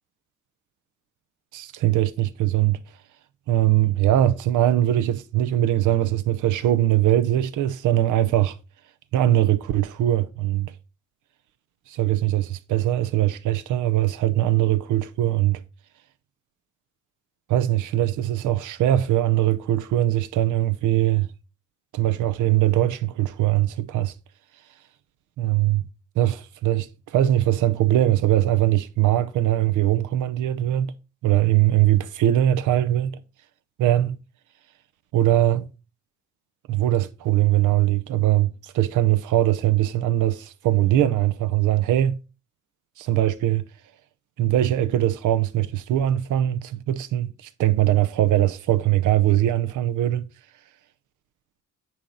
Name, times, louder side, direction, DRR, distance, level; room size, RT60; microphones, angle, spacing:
voice 1, 1.5-2.8 3.5-8.6 9.1-10.7 11.9-15.6 17.5-21.3 21.9-24.1 25.4-25.8 26.2-30.9 31.2-33.2 33.8-34.2 35.1-35.7 36.7-42.2 43.0-43.6 44.4-50.3, right 13 dB, 80° right, 0.8 m, -21 dB
9.6 x 4.3 x 3.9 m
cardioid pair, 90°, 30 cm